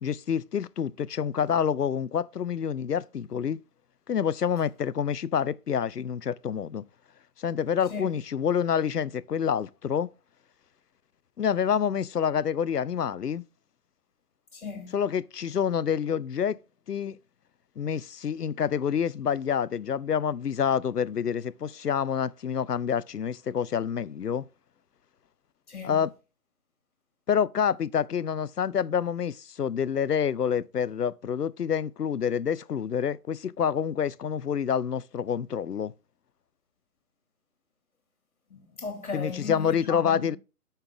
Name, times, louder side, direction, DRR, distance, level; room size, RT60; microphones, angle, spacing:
voice 1, 0.0-3.6 4.1-6.8 7.4-10.1 11.4-13.4 14.9-16.6 16.9-17.2 17.8-24.4 25.8-26.1 27.3-35.9 39.1-40.4, left 8 dB, 80° left, 0.7 m, -27 dB
voice 2, 14.5-14.9 25.7-26.0 38.5-40.3, left 5 dB, 50° left, 2.6 m, -36 dB
8.9 x 5.8 x 3.6 m
figure-of-eight pair, 160°, 47 cm